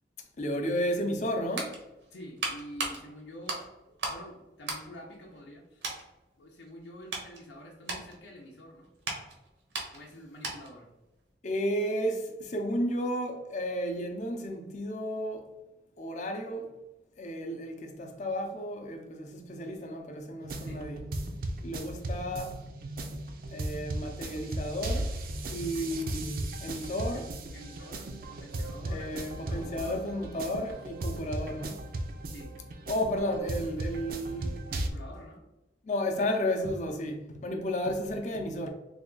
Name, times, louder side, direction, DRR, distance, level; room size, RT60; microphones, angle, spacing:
voice 1, 0.4-1.8 11.4-15.5 16.0-16.7 17.2-21.0 21.6-22.6 23.5-25.1 25.5-27.3 28.9-31.8 32.9-34.6 35.8-38.7, equal, 45° left, 0.5 m, -33 dB
sound 1, 1.5-4.3 4.6-5.5 5.8-6.1 6.6-10.8 11.1-11.3, right 3 dB, 90° right, 1.0 m, -38 dB
voice 2, 2.1-3.6 4.1-5.8 6.4-8.9 9.9-10.9 20.6-20.8 25.6-26.1 27.1-27.3 27.5-30.0 32.3-32.5 34.7-35.4, equal, 85° left, 0.6 m, -47 dB
sound 2, 20.4-34.9, right 1 dB, 55° right, 0.5 m, -36 dB
3.4 x 2.3 x 3.7 m
head